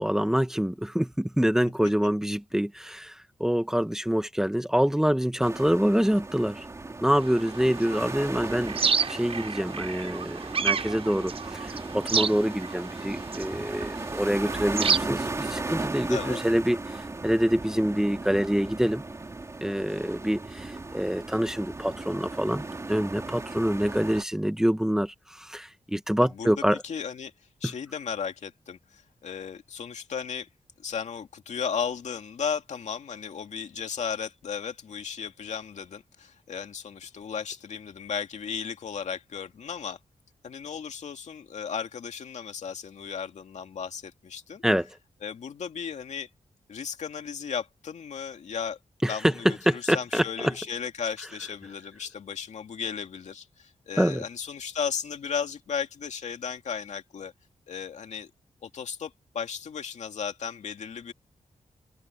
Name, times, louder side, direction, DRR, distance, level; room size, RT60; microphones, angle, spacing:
voice 1, 0.0-6.6 7.0-8.8 9.1-19.0 19.6-26.8 27.6-27.7 44.6-44.9 49.0-50.5 54.0-54.2, equal, 5° right, 1.3 m, -26 dB
sound 1, 5.4-24.2, right 3 dB, 25° right, 2.9 m, -36 dB
sound 2, 7.2-15.0, right 6 dB, 50° right, 6.4 m, -31 dB
voice 2, 16.1-16.4 26.2-26.5 26.8-27.3 27.6-30.5 30.8-40.0 40.4-44.6 45.2-46.3 46.7-48.8 49.1-57.3 57.7-58.3 58.6-61.1, left 7 dB, 75° left, 2.4 m, -35 dB
open air
wide cardioid pair, 130°, 12 cm